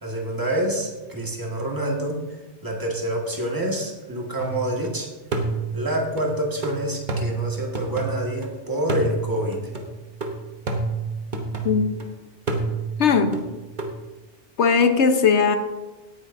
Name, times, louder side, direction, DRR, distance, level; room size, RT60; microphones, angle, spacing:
voice 1, 0.0-2.2 2.6-5.1 5.7-9.6, right 1 dB, 15° right, -1 dB, 1.8 m, -27 dB
sound 1, 4.4-4.9 5.3-8.5 8.9-12.1 12.5-13.9, right 3 dB, 45° right, 1.2 m, -29 dB
voice 2, 13.0-13.4 14.6-15.6, left 5 dB, 75° left, 7 dB, 1.2 m, -18 dB
17.5 x 9.8 x 2.7 m, 1.1 s
omnidirectional pair, 1.2 m